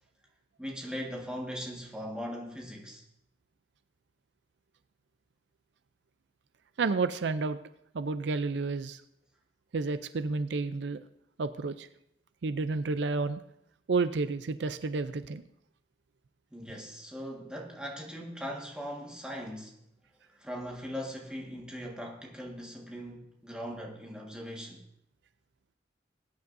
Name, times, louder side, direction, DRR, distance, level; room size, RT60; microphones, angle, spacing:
voice 1, 0.6-3.0 16.5-19.7 20.4-24.8, equal, 5° right, 1.6 m, -40 dB
voice 2, 6.8-7.6 7.9-9.0 9.7-11.0 11.4-11.9 12.4-13.4 13.9-15.4, right 4 dB, 75° right, 0.5 m, -30 dB
20.0 x 9.4 x 2.6 m
head